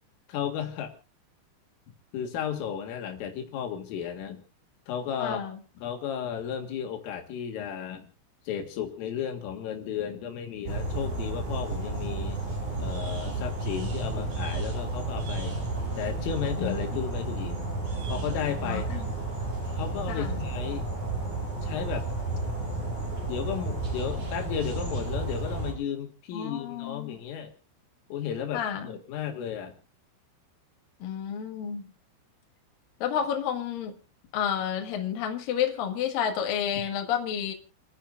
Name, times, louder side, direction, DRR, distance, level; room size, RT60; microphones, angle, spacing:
voice 1, 0.3-0.9 2.1-4.4 4.9-5.4 5.8-8.1 8.5-12.4 12.8-15.6 16.0-17.6 18.1-19.1 19.7-20.9 21.6-22.1 23.3-27.5 28.1-29.7, left 8 dB, 75° left, 4 dB, 4.5 m, -34 dB
voice 2, 5.2-5.6 16.6-16.7 18.6-19.0 20.1-20.4 26.3-27.2 28.5-29.0 31.0-31.8 33.0-33.9 34.3-37.5, left 8 dB, 55° left, 4 dB, 2.8 m, -30 dB
sound 1, 10.7-25.7, right 2 dB, 35° right, 6.4 m, -32 dB
30.0 x 10.5 x 2.4 m, 0.30 s
omnidirectional pair, 5.9 m